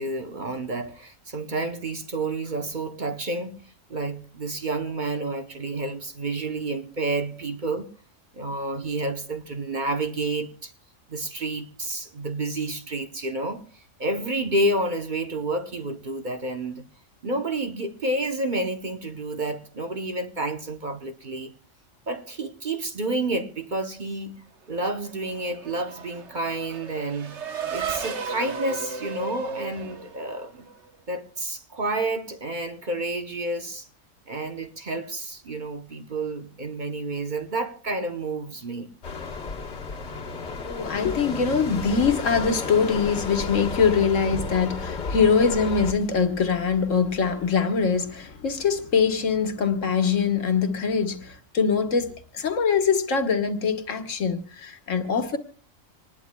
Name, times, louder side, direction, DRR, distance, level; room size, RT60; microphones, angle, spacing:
voice 1, 0.0-7.9 8.3-10.7 11.1-16.9 17.2-21.5 22.1-27.4 27.7-30.7 31.1-33.9 34.3-38.9, right 2 dB, 40° right, 1.0 m, -30 dB
Race car auto racing / Accelerating revving vroom, 24.8-30.9, right 5 dB, 60° right, 1.3 m, -35 dB
sound 1, 39.0-45.9, left 4 dB, 60° left, 1.6 m, -33 dB
voice 2, 40.7-55.4, left 5 dB, 75° left, 1.6 m, -23 dB
25.0 x 19.5 x 2.3 m
omnidirectional pair, 1.3 m